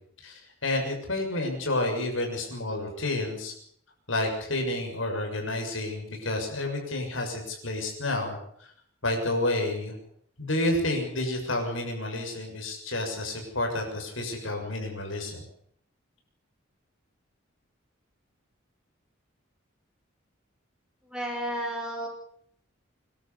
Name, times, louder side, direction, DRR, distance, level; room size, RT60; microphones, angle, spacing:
voice 1, 0.2-3.5 4.1-8.4 9.0-10.0 10.4-15.4, left 2 dB, 80° left, 2 dB, 6.8 m, -30 dB
voice 2, 21.1-22.1, equal, 5° right, 1 dB, 5.7 m, -32 dB
25.5 x 12.5 x 8.3 m, 0.67 s
head